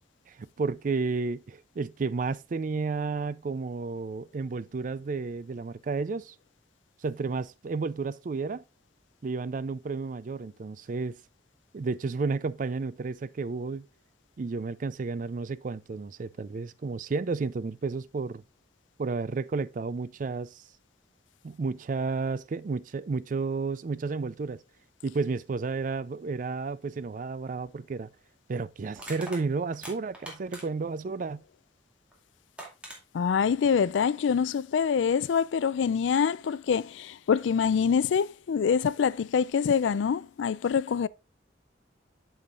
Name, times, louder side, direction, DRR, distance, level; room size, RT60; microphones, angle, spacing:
voice 1, 0.3-6.3 7.0-8.6 9.2-11.2 11.7-13.9 14.4-18.4 19.0-20.6 21.4-24.6 25.0-28.1 28.5-31.4, right 4 dB, 45° right, 0.4 m, -32 dB
Crushing, 27.6-27.7 28.9-30.9 32.1-32.2 32.6-33.0, right 1 dB, 5° right, 2.3 m, -43 dB
voice 2, 33.1-41.1, left 6 dB, 90° left, 0.4 m, -25 dB
8.2 x 7.1 x 2.4 m
head